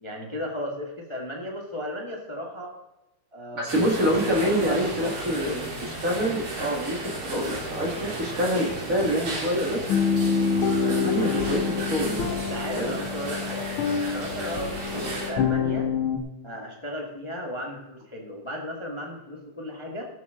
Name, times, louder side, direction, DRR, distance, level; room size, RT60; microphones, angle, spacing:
voice 1, 0.0-2.7 3.3-3.6 3.9-5.8 12.3-15.9 16.4-20.1, equal, 35° left, -1 dB, 0.4 m, -35 dB
voice 2, 3.6-5.7 6.0-9.9 10.7-12.3 12.8-13.0 15.0-15.1, equal, 30° right, -1 dB, 1.7 m, -26 dB
sound 1, 3.7-15.3, right 2 dB, 80° right, 5.3 m, -34 dB
sound 2, 9.9-16.2, left 6 dB, 70° left, 1.2 m, -26 dB
19.5 x 7.1 x 3.7 m, 0.97 s
omnidirectional pair, 3.8 m